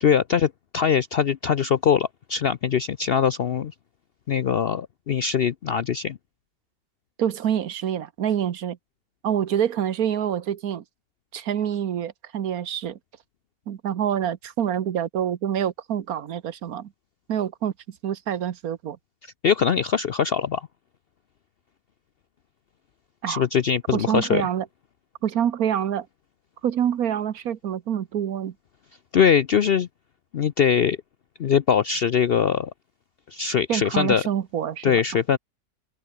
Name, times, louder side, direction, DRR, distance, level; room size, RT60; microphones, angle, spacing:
voice 1, 0.0-3.7 4.3-6.2 19.4-20.7 23.3-24.4 29.1-29.9 30.3-31.0 31.4-32.7 33.3-34.2 34.8-35.4, left 7 dB, 60° left, 0.6 m, -22 dB
voice 2, 7.2-8.8 9.2-10.8 11.3-13.0 13.7-16.9 17.3-17.7 18.0-19.0 23.2-23.4 23.9-24.7 25.2-26.1 26.6-28.5 33.7-35.0, right 9 dB, 70° right, 1.5 m, -26 dB
omnidirectional pair, 1.6 m